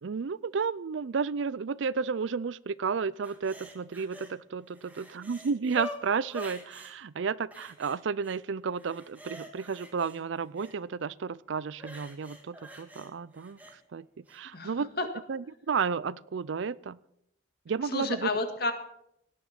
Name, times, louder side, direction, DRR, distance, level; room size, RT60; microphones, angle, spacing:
voice 1, 0.0-13.6 13.9-14.1 14.3-14.9 15.3-17.0 17.7-18.3, right 5 dB, 75° right, 20 dB, 0.5 m, -32 dB
sound 1, 3.2-4.3 4.7-6.9 7.5-8.4 8.7-10.8 11.7-13.8 14.3-14.4, equal, 10° right, 1.9 m, -46 dB
voice 2, 14.5-15.1 17.9-18.7, left 3 dB, 55° left, 6 dB, 1.9 m, -31 dB
17.5 x 10.0 x 5.8 m, 0.76 s
head